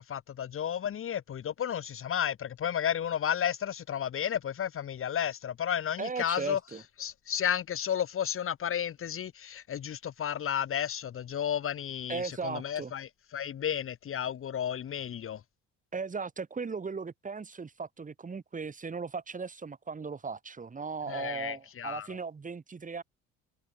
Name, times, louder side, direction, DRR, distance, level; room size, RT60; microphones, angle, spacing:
voice 1, 0.0-6.6 7.0-15.4 21.1-22.1, left 9 dB, 45° left, 2.9 m, -32 dB
voice 2, 6.0-6.8 12.1-12.9 15.9-23.0, right 5 dB, 25° right, 7.1 m, -37 dB
cardioid pair, 100°, 29 cm